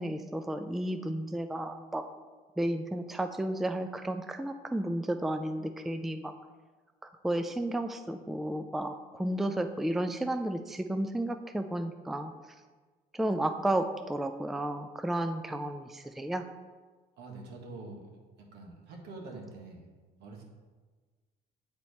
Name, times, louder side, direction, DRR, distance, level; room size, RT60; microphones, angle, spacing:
voice 1, 0.0-2.0 2.6-6.3 7.0-12.3 13.1-16.4, right 1 dB, ahead, 7 dB, 0.3 m, -32 dB
voice 2, 17.2-18.1 18.5-19.9 20.2-20.4, right 3 dB, 80° right, 1 dB, 1.5 m, -45 dB
8.1 x 4.4 x 4.1 m, 1.4 s
cardioid pair, 110°, 17 cm